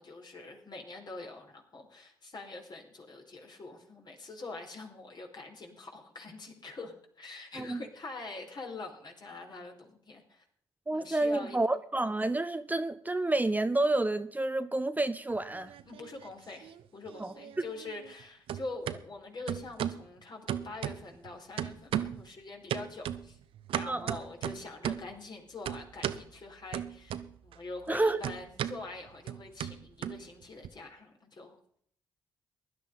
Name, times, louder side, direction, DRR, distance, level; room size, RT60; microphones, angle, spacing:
voice 1, 0.0-10.4 10.9-11.6 15.9-23.4 23.7-31.6, left 3 dB, 45° left, 2 dB, 4.3 m, -44 dB
voice 2, 10.9-15.7 17.2-17.3 23.9-24.2 27.9-28.2, right 2 dB, 15° right, 11 dB, 0.9 m, -29 dB
sound 1, 15.3-16.3 16.6-18.2 18.5-19.0 19.5-20.0 20.5-21.3 21.6-22.3 22.7-25.1 25.7-26.3 26.7-27.6 27.8-30.7, right 10 dB, 65° right, 0.8 m, -36 dB
16.5 x 11.0 x 5.4 m, 0.64 s
hypercardioid pair, 45°, 10 cm